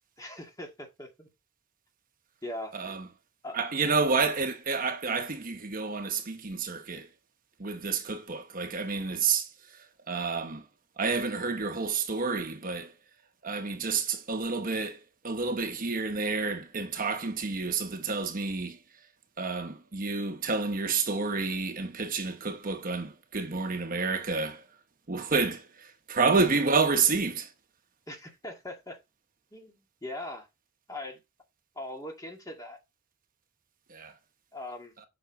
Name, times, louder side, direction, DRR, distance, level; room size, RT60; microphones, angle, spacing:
voice 1, 0.2-1.3 2.4-2.7 3.4-3.6 28.1-29.0 29.5-30.5 30.9-31.2 31.8-32.8 34.5-34.9, left 1 dB, 20° left, 2.0 m, -40 dB
voice 2, 2.7-3.1 3.5-7.1 7.6-9.5 10.1-10.6 11.0-12.9 13.4-15.0 15.2-18.8 19.4-24.6 25.1-27.5 33.9-34.1, right 4 dB, 45° right, 1.0 m, -29 dB
7.6 x 5.7 x 4.2 m
head